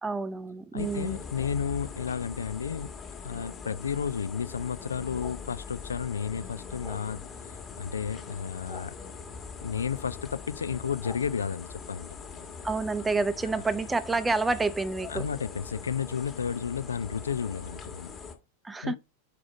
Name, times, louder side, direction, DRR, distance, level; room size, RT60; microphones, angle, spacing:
voice 1, 0.0-1.2 12.6-15.2 18.6-19.0, right 3 dB, 10° right, 0.5 m, -28 dB
voice 2, 0.7-2.9 3.2-9.0 9.6-12.1 15.1-18.1 18.8-19.0, left 7 dB, 70° left, 0.3 m, -32 dB
sound 1, 0.8-18.3, left 5 dB, 20° left, 1.4 m, -42 dB
4.9 x 4.9 x 5.0 m
figure-of-eight pair, 90°, 0 cm